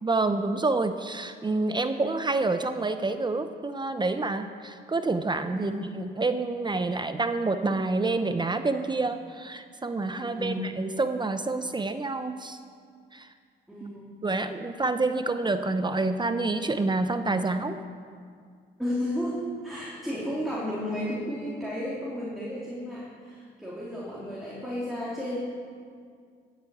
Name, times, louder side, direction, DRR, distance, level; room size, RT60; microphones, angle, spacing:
voice 1, 0.0-12.6 13.1-13.3 14.2-17.8, right 3 dB, 20° right, 9 dB, 0.7 m, -28 dB
voice 2, 5.5-5.9 10.2-10.7 13.7-14.0 18.8-25.4, equal, ahead, -7 dB, 3.5 m, -33 dB
14.0 x 8.3 x 8.6 m, 2.1 s
cardioid pair, 90°, 20 cm